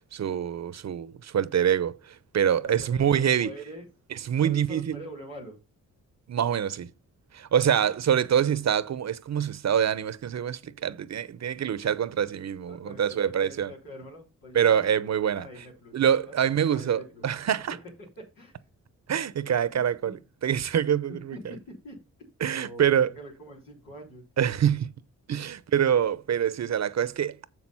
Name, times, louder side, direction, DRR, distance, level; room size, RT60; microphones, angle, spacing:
voice 1, 0.1-3.6 4.1-5.0 6.3-6.9 7.3-13.7 14.5-15.5 15.9-17.8 19.1-21.4 22.4-23.1 24.4-24.9 25.3-27.4, right 9 dB, 55° right, 0.7 m, -25 dB
voice 2, 2.6-3.9 4.4-5.6 12.7-13.0 13.4-14.9 15.3-15.9 16.3-17.2 18.0-18.5 19.7-20.2 21.1-22.0 22.5-24.2, equal, 90° left, 3.6 m, -44 dB
7.0 x 6.2 x 5.6 m
cardioid pair, 60°, 32 cm